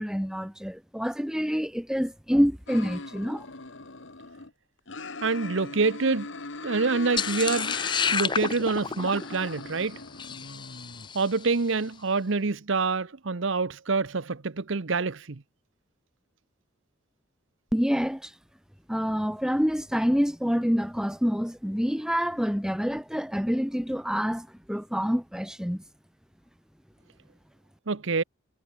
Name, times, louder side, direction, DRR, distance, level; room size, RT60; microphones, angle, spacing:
voice 1, 0.0-3.4 17.7-18.3 18.9-25.8, equal, 5° right, 2.5 m, -27 dB
sound 1, 2.7-4.5 4.9-8.2 8.5-11.1, left 3 dB, 65° left, 1.8 m, -40 dB
voice 2, 5.2-6.3 6.6-7.8 8.1-10.0 11.1-15.4 27.9-28.2, right 4 dB, 70° right, 0.8 m, -26 dB
sound 2, 7.2-11.5, left 6 dB, 20° left, 0.5 m, -30 dB
head